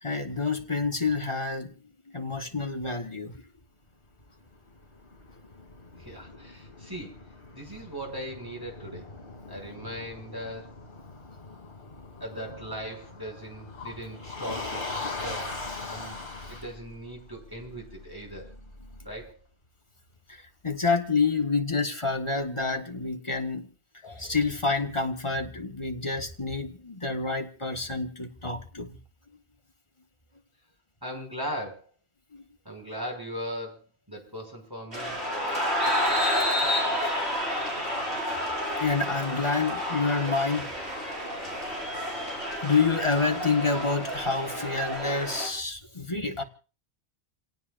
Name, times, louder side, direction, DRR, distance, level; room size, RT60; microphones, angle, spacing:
voice 1, 0.0-1.7 2.1-3.4 20.3-23.7 24.0-29.0 32.3-32.4 35.9-36.0 37.9-38.4 38.7-41.0 42.6-46.4, left 4 dB, 30° left, 4 dB, 1.6 m, -28 dB
Motor vehicle (road), 4.2-19.3, left 3 dB, 50° left, 3.6 m, -41 dB
voice 2, 6.0-7.2 7.5-9.1 9.5-10.8 12.2-16.2 16.5-18.5 19.0-19.3 31.0-31.9 32.6-33.8 34.1-35.2, equal, 20° right, 0 dB, 6.9 m, -39 dB
sound 1, 34.9-45.5, left 1 dB, 90° right, 6.8 m, -30 dB
29.0 x 18.0 x 2.6 m, 0.36 s
omnidirectional pair, 1.1 m